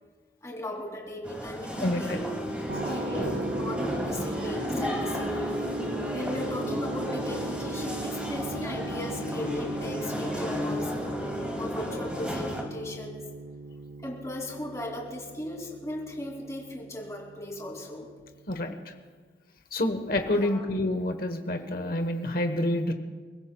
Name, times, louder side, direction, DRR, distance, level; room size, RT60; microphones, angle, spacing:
voice 1, 0.4-2.1 2.8-5.6 6.1-10.9 11.2-13.2 14.0-18.1 20.3-20.7, left 1 dB, 15° left, -1 dB, 2.7 m, -37 dB
sound 1, 1.2-12.6, equal, 5° right, 2.3 m, -33 dB
voice 2, 1.8-2.2 2.7-2.8 18.5-18.9 19.7-22.9, left 1 dB, 55° left, 6 dB, 1.1 m, -28 dB
sound 2, 2.7-18.6, right 2 dB, 55° right, 0.6 m, -39 dB
29.0 x 15.5 x 2.3 m, 1.5 s
head